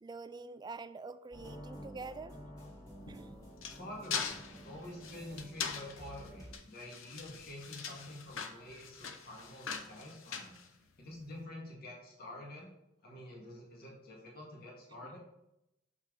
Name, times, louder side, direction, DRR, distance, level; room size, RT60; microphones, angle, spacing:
voice 1, 0.0-2.4 3.1-3.3, right 4 dB, 20° right, 13 dB, 0.3 m, -46 dB
sound 1, 1.3-6.6, equal, 20° left, 2.3 m, -51 dB
sound 2, 3.0-11.3, left 6 dB, 80° left, 0.8 m, -42 dB
voice 2, 3.8-10.6 11.0-12.7 13.0-15.2, left 1 dB, 50° left, -2 dB, 1.8 m, -48 dB
6.6 x 5.8 x 3.9 m, 0.86 s
head